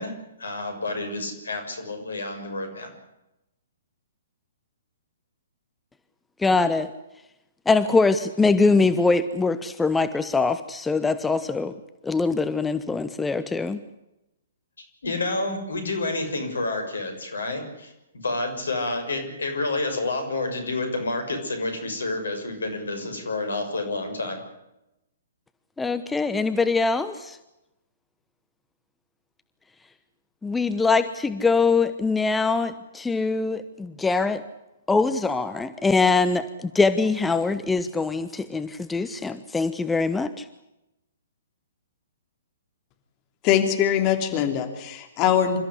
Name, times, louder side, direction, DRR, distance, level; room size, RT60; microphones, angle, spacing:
voice 1, 0.0-2.9 15.0-24.4, left 2 dB, 75° left, 7 dB, 6.5 m, -29 dB
voice 2, 6.4-6.9 7.7-11.7 12.0-13.8 25.8-27.4 30.4-34.4 34.9-40.4, left 4 dB, 10° left, 11 dB, 1.0 m, -23 dB
voice 3, 43.4-45.6, left 9 dB, 35° left, 6 dB, 3.1 m, -22 dB
27.5 x 14.0 x 9.8 m, 0.92 s
figure-of-eight pair, 120°, 0 cm